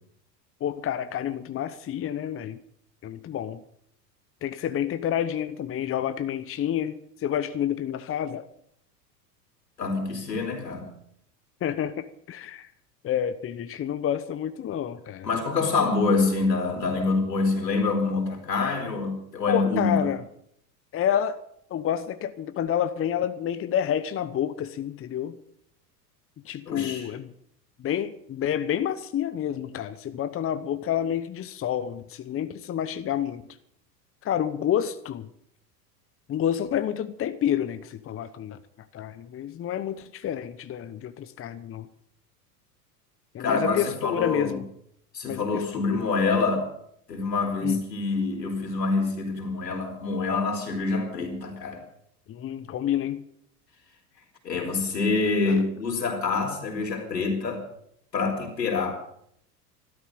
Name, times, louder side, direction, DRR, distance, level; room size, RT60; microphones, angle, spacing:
voice 1, 0.6-2.6 3.0-3.6 4.4-8.5 11.6-12.7 13.0-15.3 19.5-20.2 20.9-21.4 21.7-25.4 26.4-27.3 27.8-33.4 34.2-35.3 36.3-38.6 38.9-41.9 43.3-44.7 45.2-46.0 47.6-47.8 52.3-53.2 55.5-55.6, left 10 dB, 25° left, 1.0 m, -29 dB
voice 2, 9.8-10.8 15.2-20.1 26.7-27.1 43.4-44.6 45.1-46.7 47.1-51.8 54.4-57.6 58.1-58.9, left 3 dB, 85° left, 4.5 m, -26 dB
14.0 x 12.5 x 7.8 m
hypercardioid pair, 90°, 48 cm